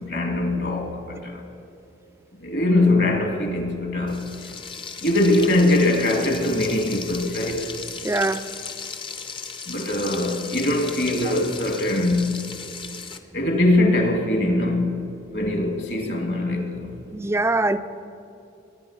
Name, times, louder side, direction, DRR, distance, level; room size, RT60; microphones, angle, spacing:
voice 1, 0.0-1.4 2.4-4.3 5.0-7.6 9.7-12.4 13.3-15.1 15.3-16.9, left 1 dB, 60° left, 2.1 m, -22 dB
Frying (food), 4.1-13.2, left 5 dB, 25° left, 0.7 m, -36 dB
voice 2, 8.0-8.4 11.3-11.4 17.1-17.8, right 2 dB, 15° right, 0.4 m, -23 dB
22.5 x 10.0 x 5.5 m
head